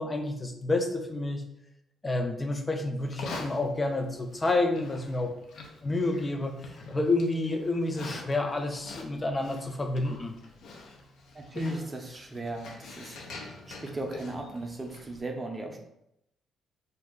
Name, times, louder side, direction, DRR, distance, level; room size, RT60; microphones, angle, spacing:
voice 1, 0.0-1.5 2.0-5.3 5.8-10.4, left 2 dB, 25° left, 5 dB, 0.5 m, -29 dB
Livestock farm animals working animals, 3.0-15.2, left 3 dB, 75° left, 0.5 m, -45 dB
voice 2, 11.3-13.3 13.7-15.8, right 1 dB, 20° right, 2 dB, 0.6 m, -36 dB
2.6 x 2.3 x 3.6 m, 0.81 s
cardioid pair, 90°, 0 cm